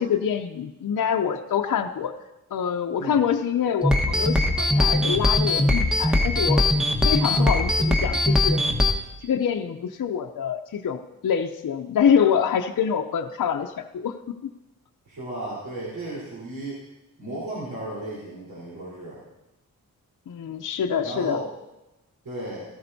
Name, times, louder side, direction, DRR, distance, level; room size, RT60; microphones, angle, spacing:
voice 1, 0.0-2.1 2.5-6.7 7.0-8.6 9.2-14.1 20.3-21.4, left 7 dB, 60° left, 4 dB, 0.6 m, -25 dB
sound 1, 3.8-8.9, left 1 dB, ahead, 1.3 m, -21 dB
voice 2, 15.1-16.8 17.2-19.2 21.0-21.5 22.2-22.7, right 1 dB, 80° right, -7 dB, 4.0 m, -34 dB
14.0 x 14.0 x 2.7 m, 0.96 s
cardioid pair, 65°, 35 cm